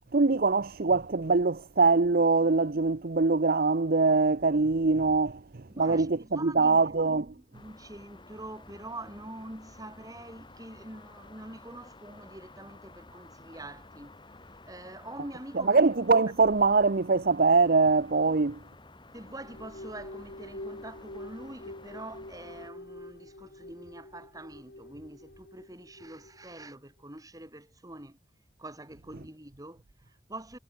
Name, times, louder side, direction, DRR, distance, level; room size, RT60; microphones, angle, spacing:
voice 1, 0.1-7.3 15.7-18.6, right 3 dB, 55° right, 0.8 m, -23 dB
voice 2, 5.7-7.0 7.3-14.2 14.7-15.8 18.2-18.4 19.1-28.2 28.6-30.6, right 1 dB, 20° right, 5.7 m, -45 dB
sound 1, 7.5-22.7, left 2 dB, 25° left, 5.1 m, -53 dB
sound 2, 19.2-26.7, left 1 dB, 60° left, 2.4 m, -46 dB
head